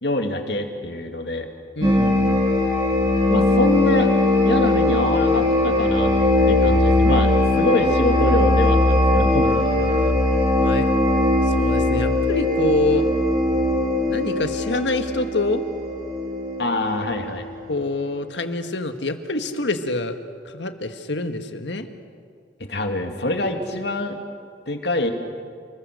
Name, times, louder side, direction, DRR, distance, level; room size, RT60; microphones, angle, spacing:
voice 1, 0.0-1.5 3.3-4.1 4.4-6.1 6.5-9.5 16.6-17.5 22.6-24.2 24.7-25.1, left 1 dB, 70° left, 4 dB, 2.4 m, -25 dB
voice 2, 1.7-2.4 9.4-10.2 10.6-10.9 11.5-13.1 14.1-15.6 17.7-20.1 20.5-21.9, left 2 dB, 85° left, 7 dB, 1.6 m, -26 dB
sound 1, 1.8-17.3, left 2 dB, 25° right, 3.6 m, -20 dB
29.5 x 21.0 x 6.8 m, 2.1 s
head